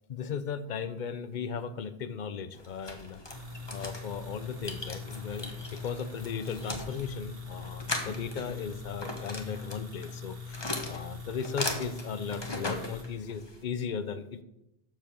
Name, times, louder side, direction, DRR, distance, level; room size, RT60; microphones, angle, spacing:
voice 1, 0.1-14.4, left 6 dB, 50° left, 13 dB, 0.7 m, -37 dB
sound 1, 2.5-13.6, left 2 dB, 25° left, 1.2 m, -39 dB
sound 2, 3.3-13.0, left 4 dB, 60° right, 1.9 m, -42 dB
7.5 x 6.7 x 6.8 m, 0.87 s
omnidirectional pair, 1.1 m